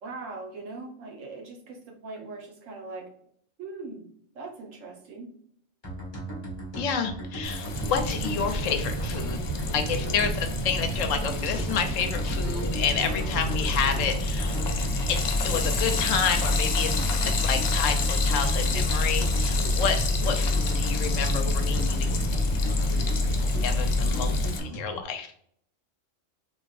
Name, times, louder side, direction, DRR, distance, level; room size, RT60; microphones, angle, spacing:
voice 1, 0.0-3.1 3.6-4.1 4.3-5.3, right 3 dB, 80° right, 2 dB, 1.3 m, -40 dB
sound 1, 5.8-25.0, right 2 dB, 25° left, 1.0 m, -37 dB
voice 2, 6.8-9.4 9.7-14.6 15.1-22.1 23.6-24.3 24.6-25.3, left 6 dB, 85° left, 7 dB, 1.0 m, -29 dB
Frying (food), 7.4-24.6, left 4 dB, 55° left, 0.5 m, -33 dB
sound 2, 7.7-24.5, left 1 dB, 30° right, 0.4 m, -28 dB
4.6 x 2.9 x 2.4 m, 0.65 s
omnidirectional pair, 1.3 m